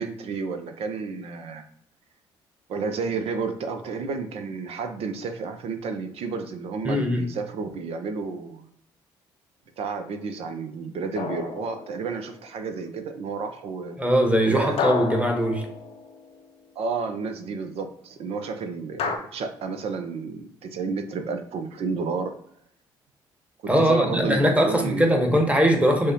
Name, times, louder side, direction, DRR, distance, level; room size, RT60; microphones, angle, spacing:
voice 1, 0.0-1.6 2.7-8.7 9.8-14.0 14.4-14.8 16.8-22.4 23.8-25.4, right 4 dB, 60° right, 7 dB, 0.5 m, -31 dB
voice 2, 6.8-7.2 14.0-15.7 23.7-26.1, equal, 10° right, 2 dB, 1.1 m, -21 dB
sound 1, 11.2-12.4 14.8-16.4 19.0-19.2, left 6 dB, 60° left, 0.6 m, -31 dB
6.3 x 2.1 x 2.8 m, 0.68 s
hypercardioid pair, 50°, 11 cm